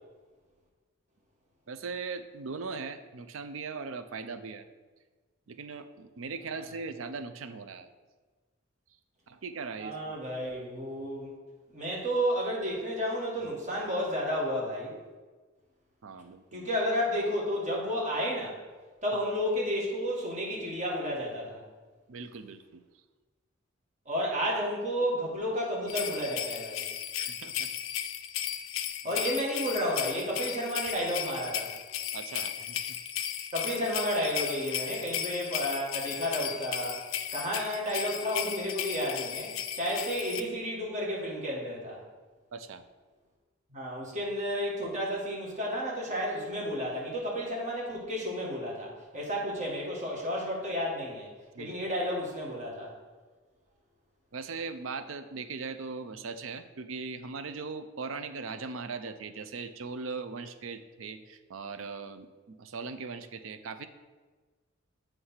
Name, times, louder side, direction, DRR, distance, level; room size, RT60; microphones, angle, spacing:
voice 1, 1.7-4.7 5.5-7.9 9.3-10.2 16.0-16.7 22.1-22.8 27.2-27.7 32.1-33.0 42.5-42.8 51.5-51.8 54.3-63.9, right 4 dB, 70° right, 10 dB, 0.5 m, -39 dB
voice 2, 9.8-11.4 11.7-15.0 16.5-18.6 19.0-21.6 24.1-26.8 29.0-31.7 33.5-37.0 37.3-42.0 43.7-51.3 51.6-52.9, equal, 40° right, -3 dB, 1.8 m, -32 dB
sound 1, 25.9-40.4, left 10 dB, 75° left, 0.5 m, -35 dB
7.9 x 3.4 x 5.6 m, 1.4 s
head